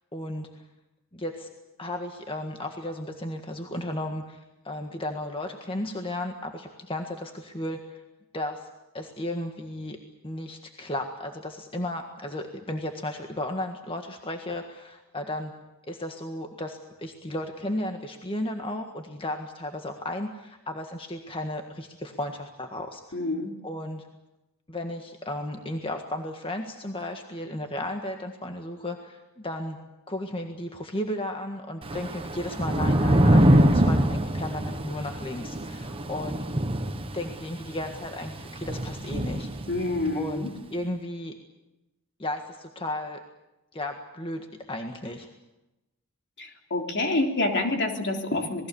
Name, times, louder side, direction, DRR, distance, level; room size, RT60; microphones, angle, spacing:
voice 1, 0.1-0.5 1.1-1.5 1.8-8.0 8.3-8.7 8.9-10.0 10.2-15.5 15.9-23.2 23.6-24.0 24.7-29.8 30.1-36.4 37.1-39.5 40.1-41.3 42.2-43.2 43.7-45.3, left 1 dB, 25° left, 4 dB, 1.7 m, -34 dB
voice 2, 23.1-23.5 33.6-33.7 39.7-40.5 46.4-48.7, left 2 dB, 55° left, 3 dB, 3.4 m, -27 dB
Thunder / Rain, 31.8-40.2, right 1 dB, 25° right, 1.4 m, -24 dB
27.5 x 20.5 x 7.1 m, 0.97 s
head